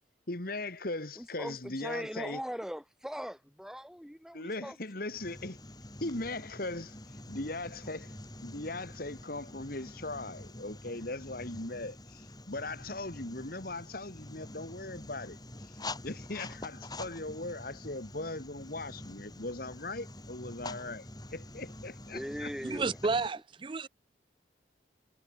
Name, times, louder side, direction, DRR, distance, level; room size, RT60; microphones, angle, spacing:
voice 1, 0.3-2.4 4.3-5.6 6.0-8.2 8.4-21.1 21.3-22.5, left 2 dB, 50° left, 2.1 m, -39 dB
voice 2, 1.2-4.7 22.1-22.9, equal, 5° right, 3.3 m, -40 dB
sound 1, 5.1-23.3, left 2 dB, 20° left, 5.4 m, -46 dB
voice 3, 22.6-23.9, right 4 dB, 25° right, 0.4 m, -31 dB
head